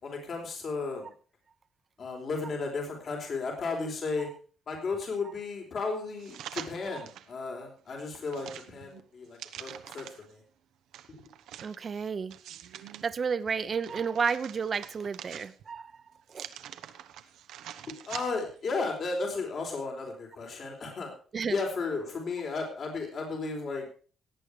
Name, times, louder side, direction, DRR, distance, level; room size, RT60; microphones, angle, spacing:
voice 1, 0.0-1.1 2.0-4.3 4.7-10.4 11.1-11.2 18.1-21.1 21.5-24.0, left 4 dB, 55° left, 2 dB, 4.3 m, -34 dB
sound 1, 6.2-7.3 7.8-10.3 10.9-13.0 13.5-15.8 16.3-18.6 19.0-19.1, right 11 dB, 85° right, 1.0 m, -45 dB
voice 2, 11.6-12.3 13.0-15.9 16.3-16.5 18.1-18.2 21.3-21.6, right 6 dB, 45° right, 13 dB, 1.0 m, -31 dB
18.0 x 8.4 x 5.0 m, 0.41 s
cardioid pair, 90°, 0 cm